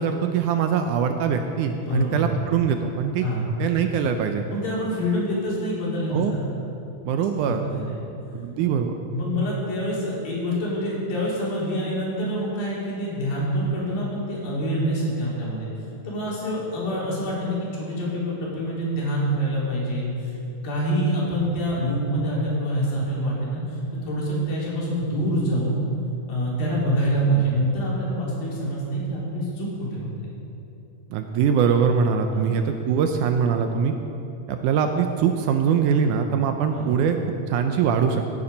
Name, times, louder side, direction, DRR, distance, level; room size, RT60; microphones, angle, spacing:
voice 1, 0.0-3.3 3.6-4.4 6.1-6.3 7.0-7.7 8.3-8.9 31.1-33.9 34.5-37.2 37.5-38.2, right 7 dB, 80° right, 6 dB, 1.9 m, -22 dB
voice 2, 1.8-2.4 3.2-3.5 4.5-6.5 7.4-8.0 9.1-15.7 16.0-20.4 20.6-25.8 26.3-30.3 32.3-32.6 36.7-36.9, equal, 90° left, -6 dB, 4.9 m, -26 dB
16.5 x 8.7 x 5.2 m, 2.8 s
omnidirectional pair, 4.0 m